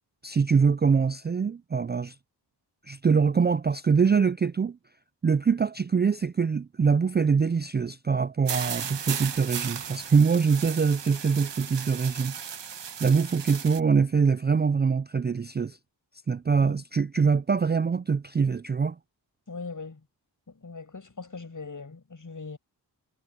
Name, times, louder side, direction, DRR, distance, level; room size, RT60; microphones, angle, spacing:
voice 1, 0.2-2.1 2.9-4.8 5.2-12.3 13.0-15.8 16.3-19.0, right 5 dB, 25° right, 0.4 m, -24 dB
sound 1, 8.5-13.8, right 7 dB, 70° right, 1.4 m, -35 dB
voice 2, 19.5-20.1 20.5-22.6, left 4 dB, 45° left, 6.9 m, -40 dB
cardioid pair, 70°, 44 cm